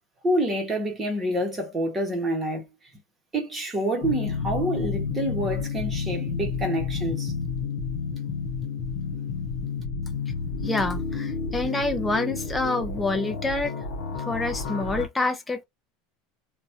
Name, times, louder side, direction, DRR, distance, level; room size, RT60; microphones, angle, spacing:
voice 1, 0.2-2.7 3.3-7.3, right 1 dB, 10° right, 1.1 m, -27 dB
sound 1, 4.0-15.1, left 5 dB, 60° left, 0.8 m, -30 dB
voice 2, 10.6-13.7 14.2-15.6, left 2 dB, 10° left, 0.5 m, -27 dB
2.9 x 2.3 x 2.7 m
supercardioid pair, 170°, 0 cm